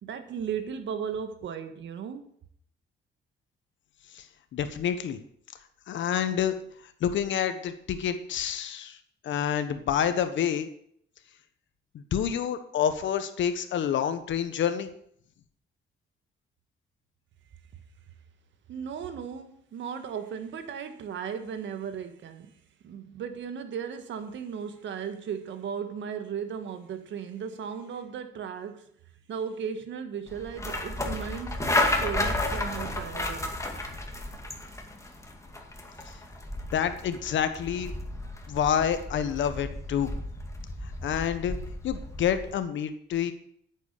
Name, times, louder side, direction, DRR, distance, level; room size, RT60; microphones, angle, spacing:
voice 1, 0.0-2.3 18.7-22.5 22.8-28.8 29.3-33.5, right 7 dB, 70° right, 1.7 m, -36 dB
voice 2, 4.5-5.2 5.9-6.5 7.0-9.0 9.2-10.7 12.1-14.9 36.7-37.9 38.5-40.1 41.0-41.6 41.8-43.3, left 9 dB, 70° left, 1.4 m, -28 dB
sound 1, 30.3-42.5, left 1 dB, 15° left, 2.2 m, -33 dB
9.7 x 8.3 x 6.8 m
cardioid pair, 90°, 20 cm